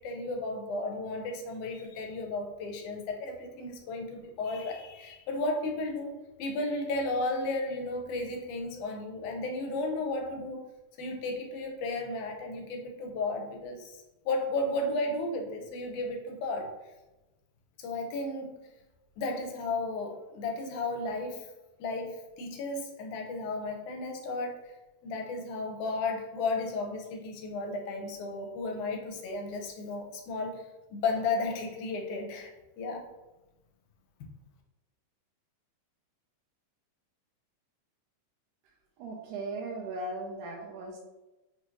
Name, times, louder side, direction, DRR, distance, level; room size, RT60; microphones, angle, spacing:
voice 1, 0.0-6.1 6.4-10.6 11.0-16.7 17.8-18.5 19.2-21.5 21.8-24.7 25.0-30.6 30.9-32.5 32.8-33.1, left 2 dB, 80° left, 2 dB, 2.1 m, -34 dB
voice 2, 39.0-41.0, right 2 dB, 80° right, -1 dB, 2.0 m, -37 dB
5.2 x 3.1 x 2.5 m, 1.0 s
omnidirectional pair, 3.6 m